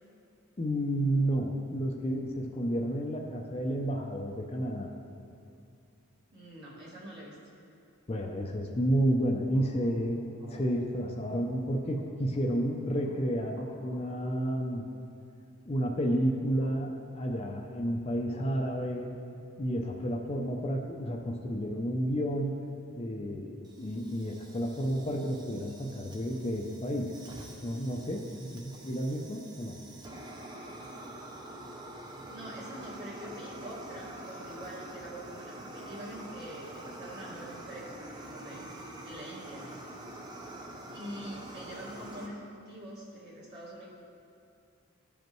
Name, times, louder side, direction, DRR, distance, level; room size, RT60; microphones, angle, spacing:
voice 1, 0.6-4.9 8.1-10.2 10.5-14.8 15.7-19.2 19.6-22.5 23.0-27.1 27.6-29.8, equal, 25° left, 1 dB, 0.5 m, -31 dB
voice 2, 6.3-7.4 9.5-9.9 10.4-10.7 11.3-11.4 13.6-14.1 16.6-16.8 32.3-38.8 39.0-39.7 40.5-43.9, right 1 dB, 45° right, -6 dB, 1.9 m, -45 dB
Fire, 23.6-42.3, right 1 dB, 20° right, 0.6 m, -46 dB
14.5 x 5.2 x 3.1 m, 2.5 s
head